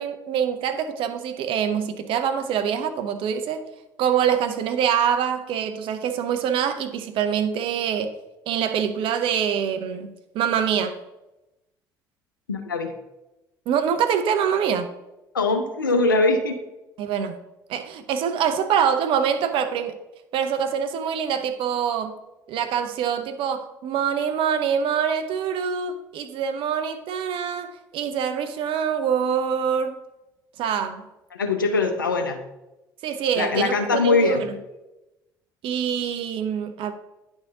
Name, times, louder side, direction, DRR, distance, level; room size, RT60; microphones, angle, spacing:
voice 1, 0.0-3.6 4.0-8.1 8.5-11.0 13.7-14.9 17.0-17.4 17.7-20.0 20.3-22.2 22.5-30.0 30.6-31.0 33.0-34.5 35.6-36.9, right 8 dB, 55° right, 0.6 m, -25 dB
voice 2, 12.5-12.9 15.3-16.6 31.3-32.4 33.3-34.4, left 3 dB, 85° left, 0.6 m, -22 dB
9.7 x 3.6 x 3.6 m
figure-of-eight pair, 55°, 11 cm